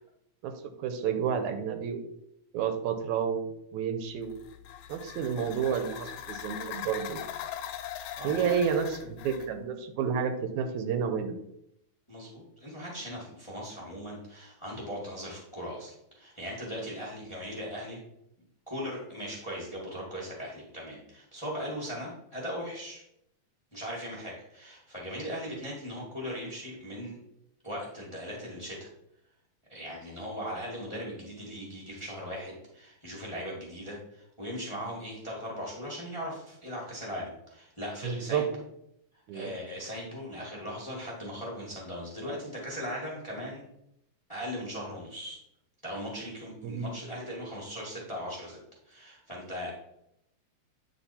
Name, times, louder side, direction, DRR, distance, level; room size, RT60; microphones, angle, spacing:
voice 1, 0.8-2.1 2.5-3.5 3.7-4.3 4.9-7.2 8.2-11.3 38.0-38.5 39.3-39.5 46.6-46.9, right 7 dB, 80° right, 8 dB, 2.1 m, -30 dB
sound 1, 4.2-9.5, left 10 dB, 85° left, 2.0 m, -41 dB
voice 2, 8.2-8.8 12.1-18.0 18.7-23.0 23.7-27.2 27.6-28.9 29.7-38.4 39.3-43.6 44.3-45.4 45.8-48.6 48.8-49.9, equal, 15° left, -4 dB, 1.3 m, -39 dB
8.8 x 4.0 x 4.2 m, 0.79 s
omnidirectional pair, 3.3 m